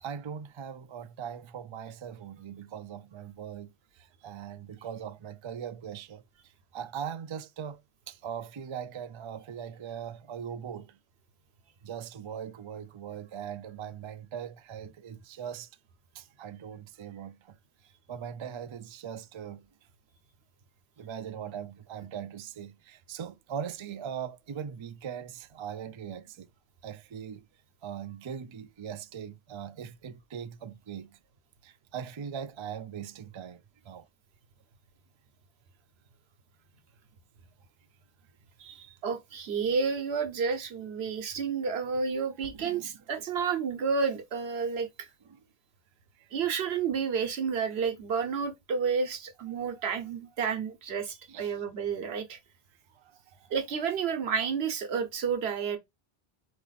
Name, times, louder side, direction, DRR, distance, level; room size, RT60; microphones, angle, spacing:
voice 1, 0.0-7.8 8.1-11.0 11.8-15.7 16.1-17.6 18.1-19.7 21.0-26.5 26.8-27.4 27.8-31.2 31.6-34.1 42.5-42.9 45.3-45.4 46.2-46.3 49.5-49.9 51.3-51.6 52.9-53.5, right 8 dB, 45° right, 0.4 m, -40 dB
voice 2, 38.6-45.1 46.3-52.4 53.5-55.8, right 6 dB, 85° right, 1.1 m, -30 dB
4.1 x 3.0 x 3.9 m
omnidirectional pair, 1.0 m